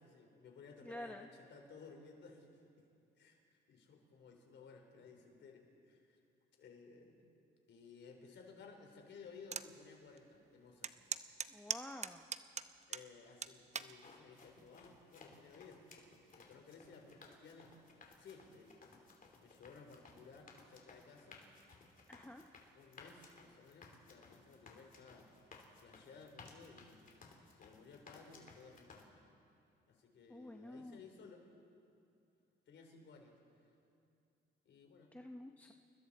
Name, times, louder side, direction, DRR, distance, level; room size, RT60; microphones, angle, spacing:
voice 1, 0.0-2.5 2.8-2.9 3.2-6.2 6.6-7.2 7.7-10.9 12.9-16.0 16.3-17.8 18.2-18.9 19.4-21.4 22.7-25.3 25.8-27.1 27.6-29.1 29.9-31.4 32.7-33.4 34.6-35.1, left 4 dB, 65° left, 2 dB, 3.9 m, -57 dB
voice 2, 0.8-1.3 11.5-12.3 22.1-22.4 30.3-31.0 35.1-35.7, left 1 dB, 5° left, 3 dB, 0.8 m, -49 dB
sound 1, 9.5-9.7 10.2-10.3 10.8-13.1 13.4-13.9 14.6-15.0, right 6 dB, 35° right, 0.8 m, -40 dB
sound 2, 13.8-29.0, left 4 dB, 45° left, 3.1 m, -60 dB
29.0 x 21.0 x 4.3 m, 2.6 s
cardioid pair, 90°, 20 cm